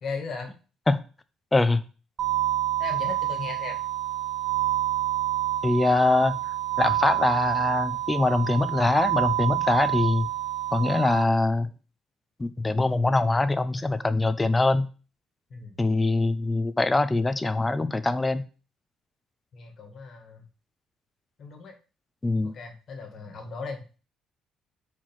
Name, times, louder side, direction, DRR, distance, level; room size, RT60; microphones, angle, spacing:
voice 1, 0.0-0.5 2.8-3.8 15.5-15.8 19.5-20.4 21.4-21.7 22.4-23.8, left 4 dB, 50° left, 4 dB, 1.7 m, -37 dB
voice 2, 1.5-1.8 5.6-6.3 6.8-10.3 10.7-11.7 12.4-14.9 15.8-18.4 22.2-22.5, left 2 dB, 15° left, 13 dB, 0.5 m, -23 dB
sound 1, 2.2-11.2, right 14 dB, 55° right, 0.7 m, -27 dB
4.6 x 4.4 x 5.9 m, 0.35 s
cardioid pair, 120°, 0 cm